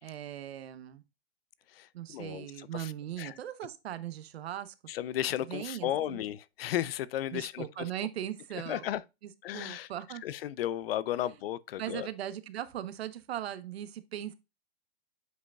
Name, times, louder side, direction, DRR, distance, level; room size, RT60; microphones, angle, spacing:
voice 1, 0.0-1.0 1.9-4.7 5.5-6.2 7.3-8.9 9.2-10.2 11.3-11.4 11.8-14.3, right 11 dB, 75° right, 1.0 m, -39 dB
voice 2, 1.7-2.5 2.7-2.9 3.2-3.3 4.9-7.7 8.5-9.0 9.4-9.9 10.2-12.1, left 12 dB, 65° left, 0.6 m, -34 dB
8.0 x 5.0 x 2.3 m
hypercardioid pair, 135°, 32 cm